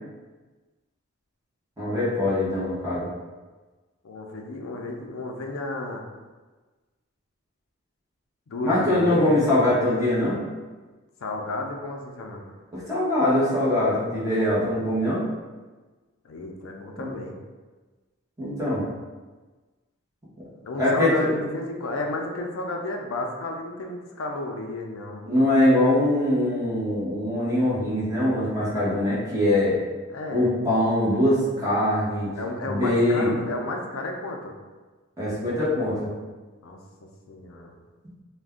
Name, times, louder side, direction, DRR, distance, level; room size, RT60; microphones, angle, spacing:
voice 1, 1.8-3.1 8.6-10.4 12.7-15.2 17.0-17.1 18.4-18.8 20.8-21.3 25.3-29.8 30.3-32.3 32.6-33.3 35.2-36.1, left 1 dB, 15° right, -9 dB, 0.9 m, -22 dB
voice 2, 4.0-6.0 8.5-10.4 11.2-12.5 16.2-17.4 20.6-25.3 30.1-30.5 32.4-34.6 36.6-36.8 37.3-37.8, left 2 dB, 70° left, 2 dB, 0.4 m, -32 dB
2.5 x 2.2 x 3.5 m, 1.3 s
head